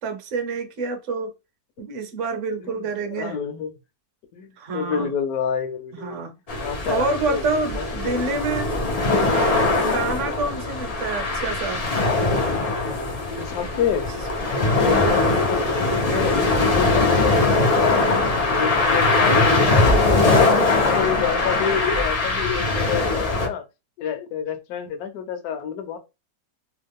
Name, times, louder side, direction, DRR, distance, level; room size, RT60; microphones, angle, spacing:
voice 1, 0.0-1.3 1.8-3.4 4.6-5.1 5.9-6.3 6.9-8.7 9.2-11.8 14.9-15.3, right 4 dB, 55° right, 1.0 m, -28 dB
voice 2, 2.6-3.8 4.3-6.2 6.6-7.4 7.7-8.2 9.3-9.7 13.3-14.1 14.6-15.7 16.1-18.1 18.6-20.3 20.6-23.6 24.0-26.0, left 8 dB, 70° left, 1.1 m, -28 dB
sound 1, 6.5-23.5, left 3 dB, 85° left, 0.3 m, -21 dB
3.1 x 2.3 x 3.4 m
omnidirectional pair, 1.8 m